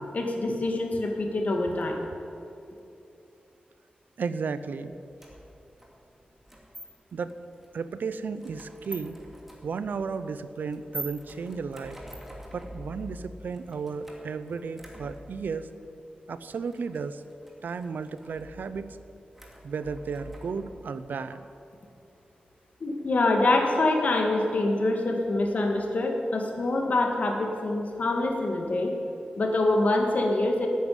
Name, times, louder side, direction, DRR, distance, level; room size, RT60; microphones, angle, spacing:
voice 1, 0.1-2.0 22.8-28.9 29.4-30.7, left 2 dB, 55° left, 2 dB, 2.0 m, -25 dB
voice 2, 4.2-4.9 7.1-7.3 7.7-9.1 9.6-12.0 12.5-15.7 16.3-17.2 17.6-18.9 19.6-21.5, right 5 dB, 90° right, 12 dB, 0.7 m, -34 dB
sound 1, 5.2-21.0, equal, 5° right, 2.4 m, -46 dB
12.5 x 9.3 x 9.6 m, 2.7 s
wide cardioid pair, 145°, 3 cm